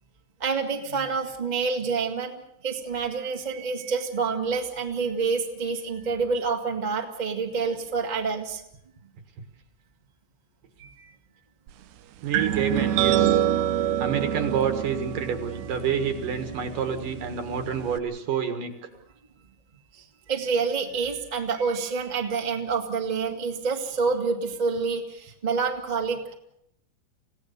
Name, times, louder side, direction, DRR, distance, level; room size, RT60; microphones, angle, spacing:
voice 1, 0.4-2.3 2.6-8.6 10.8-11.1 13.6-13.7 19.9-26.3, right 5 dB, 15° right, 2 dB, 1.4 m, -28 dB
voice 2, 12.2-13.4 14.0-18.9, right 7 dB, 60° right, 8 dB, 3.0 m, -28 dB
sound 1, 12.3-18.0, right 11 dB, 80° right, 3.0 m, -27 dB
27.0 x 17.0 x 6.8 m, 0.74 s
omnidirectional pair, 4.8 m